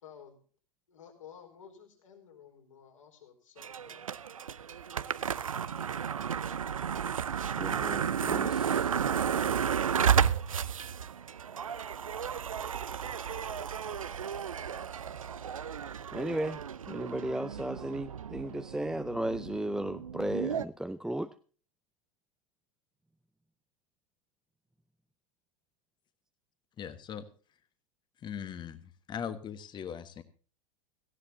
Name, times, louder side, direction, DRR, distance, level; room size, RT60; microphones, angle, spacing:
voice 1, 0.0-0.4 0.9-4.1, left 8 dB, 70° left, 2 dB, 4.5 m, -53 dB
sound 1, 3.6-20.6, right 7 dB, 75° right, 0.6 m, -33 dB
voice 2, 7.6-8.9 16.1-16.6 16.9-21.3, right 1 dB, 5° right, 10 dB, 0.6 m, -35 dB
voice 3, 26.8-27.2 28.2-30.2, left 8 dB, 25° left, 11 dB, 1.4 m, -40 dB
17.5 x 15.5 x 2.7 m, 0.40 s
figure-of-eight pair, 85°, 17 cm